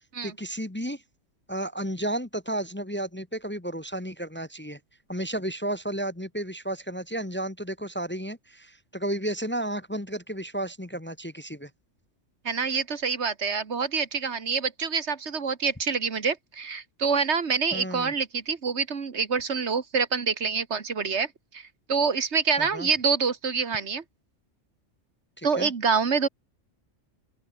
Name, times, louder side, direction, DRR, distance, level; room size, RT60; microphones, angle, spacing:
voice 1, 0.2-1.0 1.5-4.8 5.1-11.7 17.7-18.1 22.6-22.9 25.4-25.7, right 1 dB, 10° left, 0.7 m, -32 dB
voice 2, 12.5-21.3 21.5-24.0 25.4-26.3, right 5 dB, 60° right, 1.8 m, -26 dB
open air
omnidirectional pair, 1.3 m